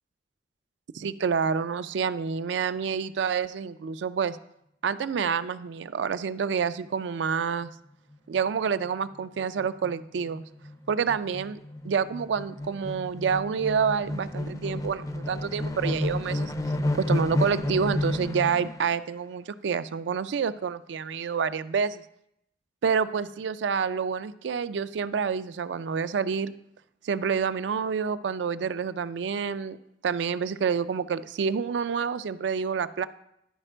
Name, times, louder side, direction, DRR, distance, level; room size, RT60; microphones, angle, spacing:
voice 1, 0.9-4.4 4.8-7.7 8.3-10.4 10.9-11.6 11.8-16.5 16.9-22.0 22.8-26.5 27.0-29.8 30.0-33.1, right 6 dB, 85° right, 14 dB, 0.4 m, -28 dB
sound 1, 8.1-8.4 8.8-8.9 9.2-18.8, left 1 dB, 20° left, 0.4 m, -31 dB
11.0 x 5.0 x 4.4 m, 0.78 s
head